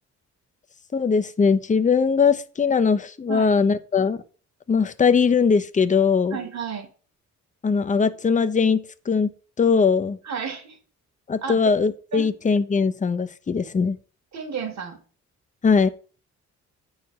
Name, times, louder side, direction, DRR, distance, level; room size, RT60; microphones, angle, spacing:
voice 1, 0.9-4.2 4.7-6.4 7.6-10.2 11.3-14.0 15.6-15.9, left 5 dB, 25° left, 0.7 m, -20 dB
voice 2, 6.3-6.9 10.2-10.8 11.4-11.6 12.1-12.3 14.3-15.0, right 6 dB, 65° right, 2.4 m, -31 dB
9.4 x 4.8 x 5.6 m
cardioid pair, 90°, 30 cm